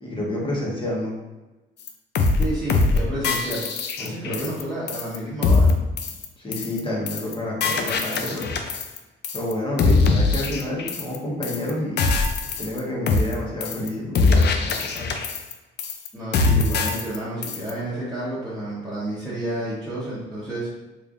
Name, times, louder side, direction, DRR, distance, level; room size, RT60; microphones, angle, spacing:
voice 1, 0.0-1.2 4.0-4.5 6.4-8.5 9.3-12.1 12.6-15.1, left 1 dB, 25° left, -4 dB, 1.2 m, -29 dB
sound 1, 1.9-2.0 2.1-2.4 2.7-3.0 3.2-4.6 4.9-5.2 5.4-5.7 6.0-6.2 6.5-6.8 7.1-7.3 7.6-9.0 9.2-9.5 9.8-11.2 11.4-11.7 12.0-12.8 13.1-13.3 13.6-13.9 14.1-15.5 15.8-16.1 16.3-17.2 17.4-17.7, left 3 dB, 60° left, 0.5 m, -22 dB
voice 2, 2.4-3.6 4.0-5.7 16.1-20.7, right 1 dB, 5° left, -11 dB, 1.2 m, -30 dB
3.5 x 3.2 x 2.5 m, 1.1 s
cardioid pair, 90°, 20 cm